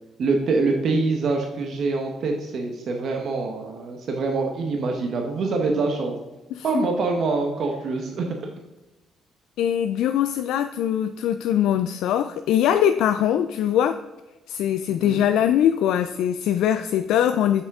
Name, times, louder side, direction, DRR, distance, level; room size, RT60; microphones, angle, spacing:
voice 1, 0.2-6.2 6.6-8.3 14.9-15.2, right 3 dB, 50° right, 2 dB, 0.9 m, -25 dB
voice 2, 9.6-14.0 14.5-17.6, left 10 dB, 80° left, 9 dB, 0.3 m, -22 dB
7.7 x 5.9 x 3.6 m, 1.1 s
cardioid pair, 150°, 0 cm